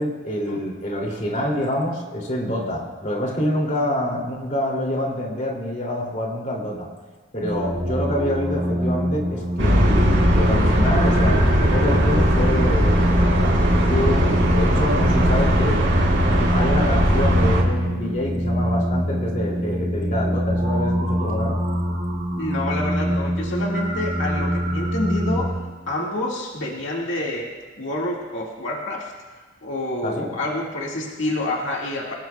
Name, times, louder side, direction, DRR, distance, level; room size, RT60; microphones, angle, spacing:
voice 1, 0.0-6.9 7.3-13.5 13.9-15.8 16.2-21.6 30.0-30.3, left 1 dB, 40° left, -1 dB, 2.7 m, -26 dB
sound 1, 7.4-25.5, equal, 25° right, 4.5 m, -24 dB
sound 2, 9.6-17.6, equal, 75° right, 4.1 m, -19 dB
voice 2, 22.4-25.5 25.9-27.5 27.8-29.1 29.6-32.1, left 1 dB, 80° left, -3 dB, 2.0 m, -28 dB
23.0 x 19.0 x 2.3 m, 1.4 s
head